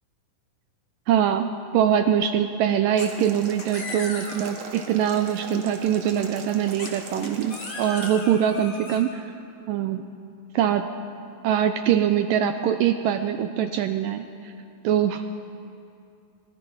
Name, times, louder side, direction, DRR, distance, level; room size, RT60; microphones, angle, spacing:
voice 1, 1.1-1.5 1.7-9.3 9.7-10.1 10.5-10.9 11.4-14.5 14.8-15.2, right 9 dB, 80° right, 8 dB, 2.1 m, -23 dB
sound 1, 3.0-3.3 3.6-4.6 6.8-9.0, left 3 dB, 35° left, 3.1 m, -37 dB
Boiling, 3.0-8.1, right 4 dB, 50° right, 2.6 m, -41 dB
25.0 x 22.0 x 5.6 m, 2.5 s
omnidirectional pair, 4.5 m